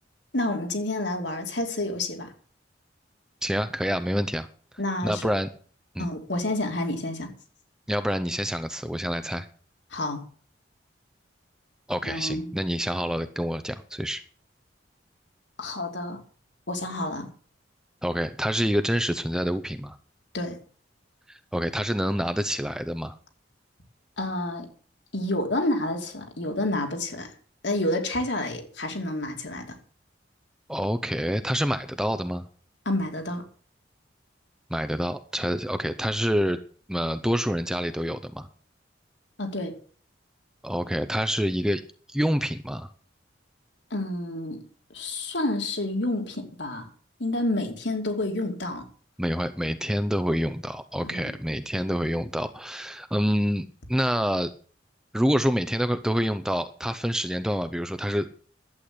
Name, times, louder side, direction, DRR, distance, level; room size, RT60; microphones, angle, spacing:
voice 1, 0.3-2.3 4.8-5.2 6.0-7.3 9.9-10.2 12.0-12.5 15.6-16.2 16.7-17.3 20.3-20.6 24.2-24.7 25.1-27.3 27.6-29.8 32.9-33.4 39.4-39.7 43.9-44.6 44.9-46.9 47.2-48.9 51.0-51.3, left 1 dB, 70° left, 2.8 m, -29 dB
voice 2, 3.4-4.5 5.0-5.5 5.9-6.1 7.9-9.5 11.9-14.2 18.0-20.0 21.3-23.2 30.7-32.5 34.7-36.6 36.9-38.5 40.6-41.8 42.1-42.9 49.2-54.5 55.1-58.3, equal, 5° right, 0.7 m, -27 dB
11.5 x 8.5 x 7.8 m
head